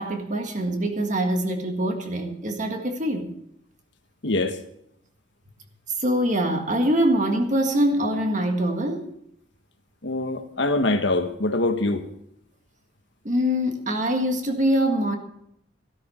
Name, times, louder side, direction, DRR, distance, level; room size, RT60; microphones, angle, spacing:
voice 1, 0.0-3.3 6.0-9.1 13.3-15.2, equal, 40° right, 1.7 m, -24 dB
voice 2, 4.2-4.6 10.0-12.0, left 2 dB, 70° left, 1.4 m, -24 dB
13.0 x 13.0 x 4.4 m
head